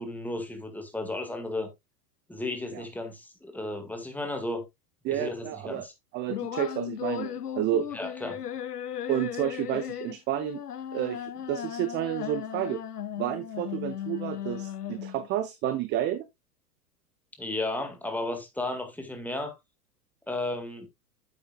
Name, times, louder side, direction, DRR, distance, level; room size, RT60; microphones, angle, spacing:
voice 1, 0.0-1.7 2.3-4.7 5.1-5.9 7.9-8.4 17.4-19.5 20.3-20.9, left 2 dB, 5° left, 1.9 m, -34 dB
voice 2, 5.0-5.9 6.1-7.9 9.1-10.6 10.9-12.8 13.2-16.3, right 11 dB, 25° right, 0.6 m, -30 dB
sound 1, 6.3-15.3, left 10 dB, 80° left, 0.6 m, -36 dB
9.6 x 7.8 x 2.4 m
figure-of-eight pair, 90°, 47 cm